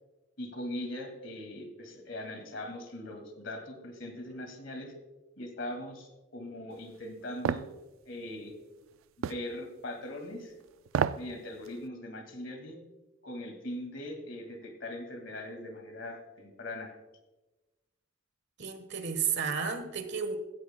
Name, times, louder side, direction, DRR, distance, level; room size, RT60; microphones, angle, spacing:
voice 1, 0.4-4.9 5.4-7.7 8.1-8.5 9.3-10.5 11.2-12.8 13.2-17.0, left 1 dB, 65° left, 2.0 m, -40 dB
sound 1, 7.5-7.7 9.2-9.5 10.9-11.3 11.7-11.8, right 7 dB, 80° right, 0.3 m, -29 dB
voice 2, 18.6-20.4, right 6 dB, 60° right, 1.3 m, -32 dB
16.0 x 14.0 x 2.2 m
head